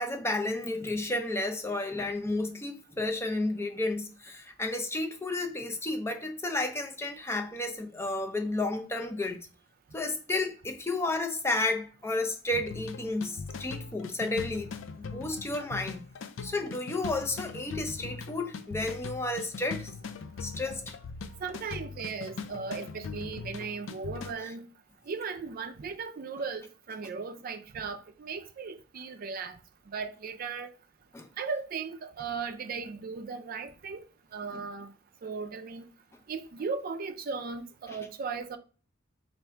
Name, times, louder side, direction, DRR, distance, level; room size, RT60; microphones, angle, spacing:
voice 1, 0.0-9.4 9.9-14.7 15.0-16.0 16.4-19.9 20.4-20.9 31.1-31.3 34.5-34.6, left 2 dB, 15° left, 0.4 m, -32 dB
sound 1, 12.5-24.3, left 5 dB, 85° left, 0.4 m, -41 dB
voice 2, 21.4-24.6 25.1-29.6 29.9-30.7 31.4-34.0 34.3-34.9 35.2-35.8 36.3-38.6, right 5 dB, 50° right, 0.4 m, -37 dB
3.4 x 2.5 x 4.4 m
head